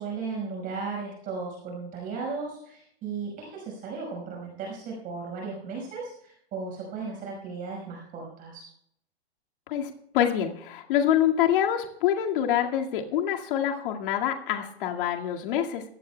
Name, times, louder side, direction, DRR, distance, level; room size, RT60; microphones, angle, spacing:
voice 1, 0.0-8.7, right 4 dB, 25° right, -1 dB, 5.1 m, -36 dB
voice 2, 9.7-15.9, left 10 dB, 50° left, 2 dB, 2.1 m, -26 dB
22.5 x 16.0 x 2.3 m, 0.71 s
hypercardioid pair, 155°, 33 cm